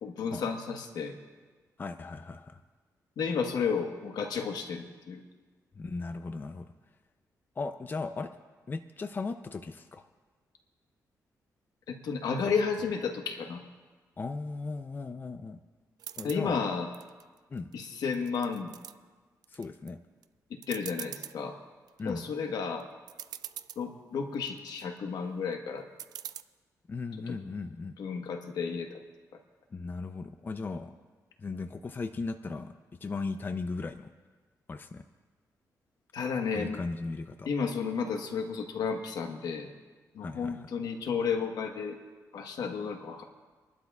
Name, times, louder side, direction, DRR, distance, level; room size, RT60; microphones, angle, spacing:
voice 1, 0.0-1.1 3.2-5.2 11.9-13.6 16.2-16.9 17.7-18.7 20.7-21.6 22.0-22.9 23.8-25.8 27.3-27.4 28.0-29.0 36.1-36.8 37.5-39.7 40.1-42.0 42.3-43.2, left 5 dB, 85° left, 4 dB, 1.3 m, -32 dB
voice 2, 1.8-2.6 5.8-6.7 7.6-8.3 8.7-10.0 14.2-15.6 16.2-16.6 17.5-17.7 19.5-20.0 22.0-22.2 26.9-27.9 29.7-31.0 31.4-32.7 33.0-34.1 34.7-35.0 36.5-37.5 40.2-40.7, left 3 dB, 30° left, 8 dB, 0.5 m, -37 dB
sound 1, 16.0-16.4 16.9-17.7 18.1-18.9 19.4-19.9 20.2-20.3 20.6-21.4 21.9-22.2 22.8-22.9 23.1-23.8 24.3-24.9 26.0-26.4, right 10 dB, 80° right, 0.4 m, -43 dB
30.0 x 11.5 x 2.4 m, 1.4 s
cardioid pair, 110°, 7 cm